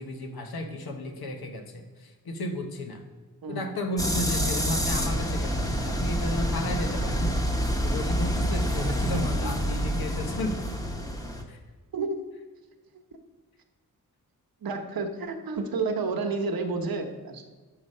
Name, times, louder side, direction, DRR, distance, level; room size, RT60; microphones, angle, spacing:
voice 1, 0.0-3.0 3.5-7.4 7.8-10.6 11.5-11.6, left 1 dB, 85° left, 5 dB, 1.1 m, -33 dB
sound 1, 4.0-11.4, equal, 10° left, 1.0 m, -27 dB
voice 2, 14.6-17.4, right 4 dB, 75° right, 5 dB, 1.0 m, -30 dB
6.6 x 5.8 x 5.4 m, 1.3 s
cardioid pair, 80°, 36 cm